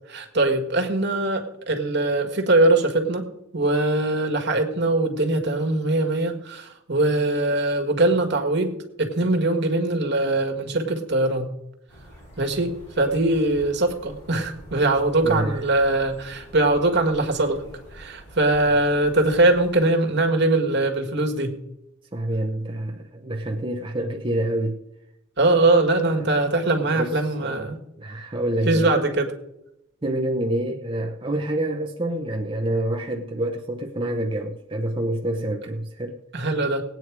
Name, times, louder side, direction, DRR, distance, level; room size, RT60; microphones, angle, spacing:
voice 1, 0.1-11.5 12.4-17.6 17.9-21.5 25.4-27.8 28.7-29.3 36.3-36.8, right 2 dB, 55° right, 1.7 m, -22 dB
sound 1, 11.9-19.7, equal, 35° left, 6.1 m, -46 dB
voice 2, 15.2-15.6 22.1-24.8 26.1-26.2 26.9-28.9 30.0-36.2, right 1 dB, 25° right, 0.8 m, -27 dB
18.0 x 9.1 x 4.8 m
head